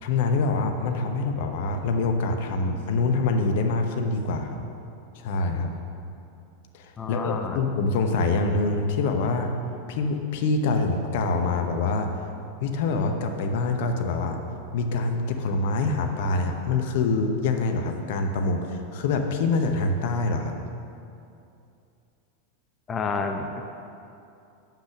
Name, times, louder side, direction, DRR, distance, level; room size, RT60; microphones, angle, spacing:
voice 1, 0.0-4.6 5.1-5.7 6.7-9.5 9.9-12.2 12.6-14.4 14.7-20.5, left 3 dB, 55° left, 5 dB, 0.9 m, -25 dB
voice 2, 7.0-7.6 22.9-23.6, left 4 dB, 25° left, 5 dB, 0.7 m, -29 dB
9.1 x 7.7 x 6.0 m, 2.7 s
figure-of-eight pair, 90°, 0 cm